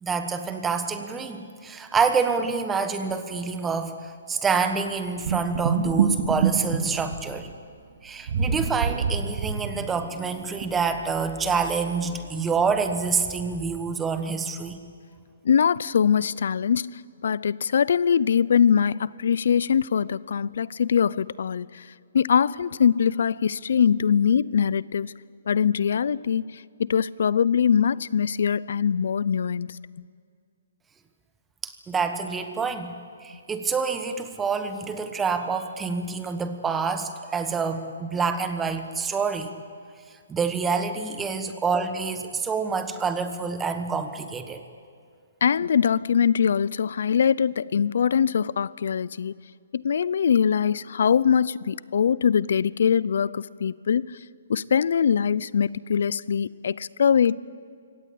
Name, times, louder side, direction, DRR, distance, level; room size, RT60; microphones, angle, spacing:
voice 1, 0.0-7.5 8.0-14.8 31.6-32.9 33.2-39.5 40.1-44.6, right 5 dB, 10° right, 8 dB, 1.2 m, -27 dB
sound 1, 5.2-7.5 8.3-10.2 10.6-10.7 11.0-11.1, right 6 dB, 50° right, 2.0 m, -25 dB
voice 2, 15.4-21.9 22.1-25.1 25.5-30.1 45.4-49.3 49.7-54.2 54.5-57.3, left 7 dB, 65° left, 21 dB, 0.5 m, -22 dB
24.0 x 17.5 x 8.6 m, 2.1 s
hypercardioid pair, 160°, 0 cm